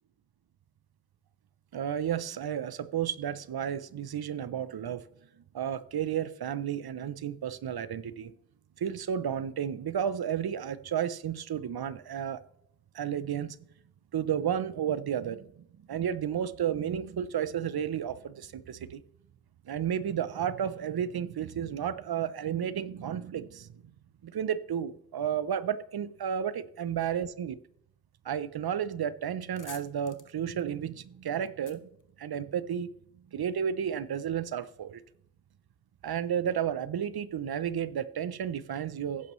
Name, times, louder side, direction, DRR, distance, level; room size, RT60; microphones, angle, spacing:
voice 1, 1.7-5.0 5.5-8.3 8.8-12.4 12.9-13.6 14.1-19.0 19.7-23.8 24.2-27.6 28.2-31.9 32.2-32.9 33.3-35.0 36.0-39.3, right 9 dB, 85° right, 0.6 m, -32 dB
sound 1, 29.5-32.9, left 5 dB, 55° left, 1.0 m, -52 dB
15.0 x 10.5 x 3.1 m
wide cardioid pair, 75°, 36 cm